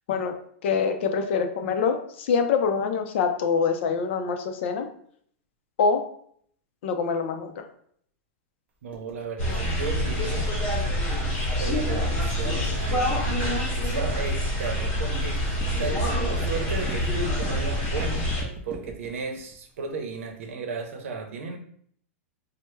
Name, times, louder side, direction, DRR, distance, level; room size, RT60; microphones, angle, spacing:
voice 1, 0.6-4.9 5.8-6.0 6.8-7.6, left 5 dB, 60° left, 6 dB, 0.5 m, -25 dB
voice 2, 8.8-10.5 11.6-13.3 13.7-18.3 18.6-21.6, right 4 dB, 85° right, 4 dB, 0.7 m, -34 dB
sound 1, 8.9-20.5, right 3 dB, 15° right, 0.5 m, -44 dB
sound 2, 9.4-18.4, equal, 25° left, 0.9 m, -26 dB
3.2 x 2.1 x 3.1 m, 0.63 s
supercardioid pair, 160°, 7 cm